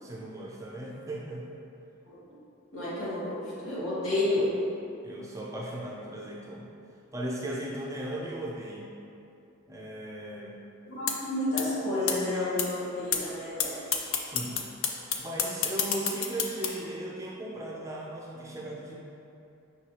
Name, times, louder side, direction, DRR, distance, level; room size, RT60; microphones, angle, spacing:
voice 1, 0.0-1.5 5.0-6.7 7.1-8.9 9.7-10.5 14.2-14.6 15.2-18.9, right 1 dB, 15° right, -4 dB, 0.4 m, -37 dB
voice 2, 2.0-2.4 2.7-4.5 10.8-13.7, left 1 dB, 85° left, -9 dB, 1.4 m, -30 dB
sound 1, 11.1-11.2 11.6-11.7 12.1-12.2 12.6-12.7 13.1-13.2 13.6-13.7 13.9-16.7, left 8 dB, 70° left, 0.4 m, -27 dB
5.4 x 3.0 x 2.9 m, 2.6 s
head